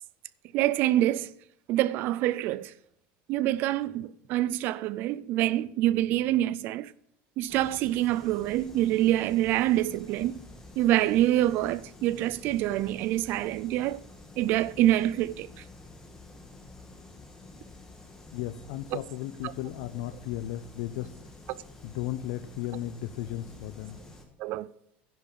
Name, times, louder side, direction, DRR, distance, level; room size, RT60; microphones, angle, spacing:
voice 1, 0.5-1.3 1.7-2.7 3.3-6.9 7.4-10.3 10.8-14.0 14.4-15.5 24.4-24.7, right 14 dB, 45° right, 0.3 m, -26 dB
sound 1, 7.5-24.3, left 2 dB, 10° left, 1.4 m, -49 dB
voice 2, 18.3-21.2 21.8-24.0, left 13 dB, 75° left, 0.6 m, -35 dB
10.5 x 5.4 x 8.4 m
cardioid pair, 170°, 5 cm